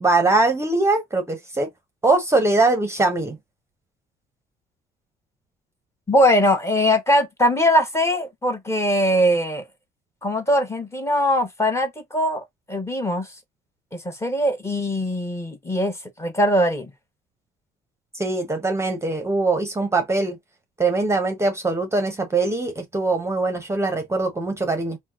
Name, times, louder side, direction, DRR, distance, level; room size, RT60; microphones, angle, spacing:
voice 1, 0.0-1.7 2.0-3.4 18.1-20.4 20.8-25.0, right 3 dB, 15° right, 0.7 m, -22 dB
voice 2, 6.1-9.6 10.2-13.3 13.9-16.9, equal, 15° left, 0.9 m, -21 dB
2.9 x 2.0 x 3.5 m
cardioid pair, 110°, 17 cm